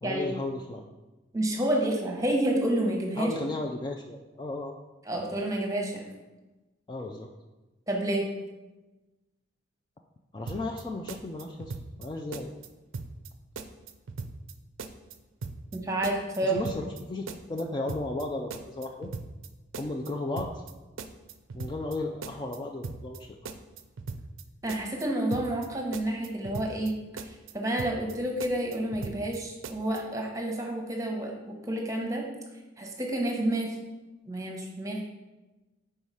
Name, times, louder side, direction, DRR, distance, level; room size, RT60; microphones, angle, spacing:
voice 1, 0.0-0.9 3.2-4.7 6.9-7.3 10.3-11.7 12.0-12.5 16.4-19.1 19.8-20.6 21.5-23.3, left 2 dB, 20° left, 1 dB, 0.3 m, -34 dB
voice 2, 1.3-3.3 5.1-6.0 7.9-8.3 15.7-16.7 24.6-26.9 27.2-32.3 32.8-33.8 34.3-35.0, right 1 dB, 15° right, 1 dB, 0.9 m, -29 dB
sound 1, 10.5-10.8 11.1-12.1 12.3-12.7 12.9-13.3 13.6-14.5 14.8-15.1 15.4-15.8 16.0-17.0 17.3-17.6 17.9-18.2 18.5-19.5 19.7-20.1 20.4-20.7 21.0-22.0 22.2-22.6 22.8-23.2 23.4-24.4 24.7-25.0 25.3-25.7 25.9-26.9 27.2-27.5 27.8-28.1 28.4-29.4 29.6-30.0, right 4 dB, 80° right, 0.5 m, -39 dB
4.7 x 4.4 x 5.5 m, 1.1 s
head